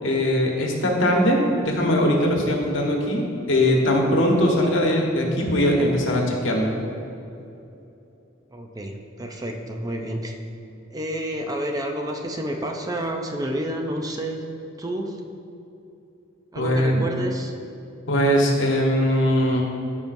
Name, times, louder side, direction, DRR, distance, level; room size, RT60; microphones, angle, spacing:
voice 1, 0.0-6.7 16.6-16.9 18.1-19.6, left 1 dB, 70° left, 0 dB, 1.3 m, -21 dB
voice 2, 8.5-10.3 10.9-14.4 14.8-15.2 16.5-17.5, right 1 dB, 20° right, 2 dB, 0.5 m, -29 dB
13.5 x 5.4 x 2.6 m, 2.8 s
head